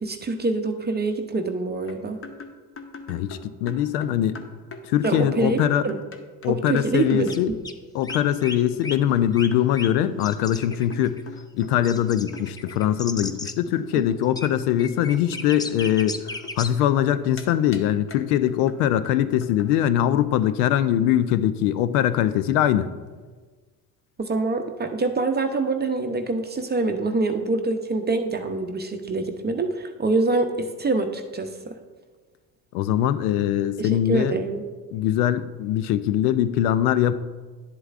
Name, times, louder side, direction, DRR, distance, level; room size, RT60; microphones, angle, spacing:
voice 1, 0.0-2.2 5.0-6.0 6.5-7.6 13.9-14.0 24.2-31.7 33.8-34.7, right 3 dB, 20° right, 5 dB, 0.7 m, -25 dB
sound 1, 1.9-6.5 6.8-6.9 7.1-7.3 8.1-8.3 8.8-12.1 12.3-12.9 13.2-17.5 17.7-17.8 18.1-18.2 18.5-18.8 19.0-19.1 19.4-19.7, left 3 dB, 30° left, 0.9 m, -42 dB
voice 2, 3.1-4.4 4.8-5.8 6.4-7.5 7.9-11.2 11.6-22.9 32.7-34.4 34.9-37.1, left 11 dB, 80° left, 14 dB, 0.6 m, -22 dB
sound 2, 7.0-7.1 7.3-7.4 7.6-7.7 8.0-8.6 8.8-9.0 9.3-9.9 10.2-13.5 14.2-14.5 14.8-16.7, left 3 dB, 10° left, 0.3 m, -35 dB
10.5 x 7.8 x 2.4 m, 1.4 s
hypercardioid pair, 75°, 45 cm